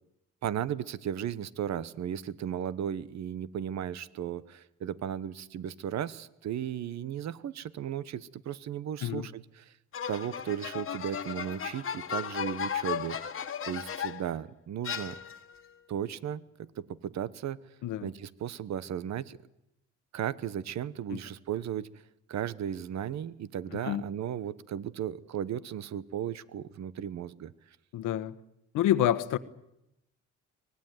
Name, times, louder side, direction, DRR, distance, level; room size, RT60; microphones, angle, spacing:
voice 1, 0.4-9.7 10.1-13.2 13.7-15.2 15.9-17.6 18.0-19.4 20.1-21.9 22.3-27.5, right 9 dB, 65° right, 17 dB, 1.1 m, -35 dB
sound 1, 9.9-14.3 14.8-15.6, left 8 dB, 45° left, 1.5 m, -35 dB
voice 2, 23.7-24.0 27.9-28.3 28.7-29.4, left 12 dB, 90° left, 13 dB, 1.3 m, -28 dB
24.0 x 19.0 x 9.4 m, 0.85 s
cardioid pair, 90°, 30 cm